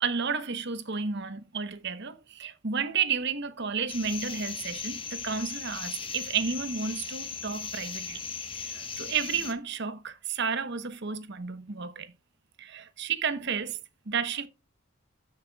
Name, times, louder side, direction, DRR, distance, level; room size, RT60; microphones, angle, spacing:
voice 1, 0.0-8.2 8.6-12.1 12.6-13.8 14.1-14.5, right 6 dB, 60° right, 1.0 m, -32 dB
sound 1, 3.9-9.5, left 6 dB, 25° left, 1.2 m, -38 dB
13.5 x 6.6 x 2.3 m
head